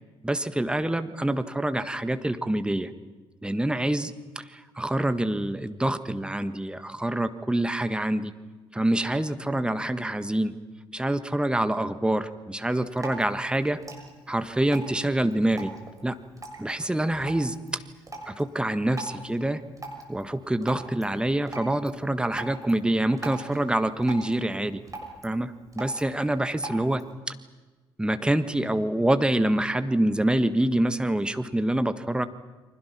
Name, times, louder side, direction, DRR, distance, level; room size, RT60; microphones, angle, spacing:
voice 1, 0.2-2.9 3.4-8.3 8.7-10.5 10.9-13.8 14.3-15.8 16.0-16.2 16.6-17.8 18.3-19.6 20.1-24.8 25.2-27.3 28.0-32.3, right 1 dB, 5° right, 11 dB, 1.6 m, -26 dB
Drip, 12.6-27.1, right 2 dB, 25° right, 6.4 m, -43 dB
29.5 x 25.0 x 6.0 m, 1.3 s
figure-of-eight pair, 45°, 13 cm